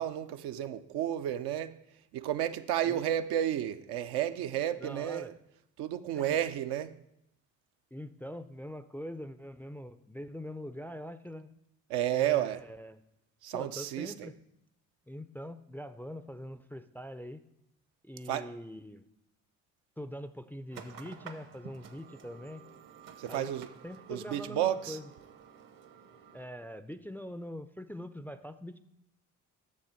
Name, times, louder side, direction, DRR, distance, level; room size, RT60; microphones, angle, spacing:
voice 1, 0.0-1.8 2.1-5.3 5.8-7.0 11.9-12.6 13.4-14.3 18.3-18.5 23.2-23.7 24.1-25.0, right 11 dB, 75° right, 0.6 m, -32 dB
voice 2, 4.8-5.3 6.2-6.4 7.9-11.6 12.1-13.0 13.5-14.4 15.1-17.4 18.0-19.1 20.0-22.6 23.3-23.5 23.8-25.0 26.3-28.8, equal, 5° left, 0.4 m, -43 dB
sound 1, 20.7-26.4, right 7 dB, 55° right, 0.9 m, -51 dB
8.5 x 6.7 x 4.4 m
hypercardioid pair, 50°, 40 cm